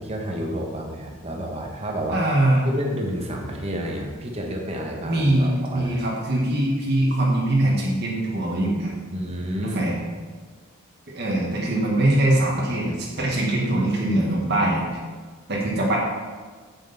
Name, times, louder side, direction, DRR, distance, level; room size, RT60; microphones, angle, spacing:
voice 1, 0.0-2.2 2.6-6.0 9.1-9.8, equal, 30° right, 1 dB, 1.2 m, -30 dB
voice 2, 2.1-2.7 5.0-8.9 9.7-9.9 11.1-14.8 15.5-16.0, right 1 dB, 50° right, -3 dB, 1.5 m, -22 dB
7.8 x 7.8 x 4.1 m, 1.4 s
head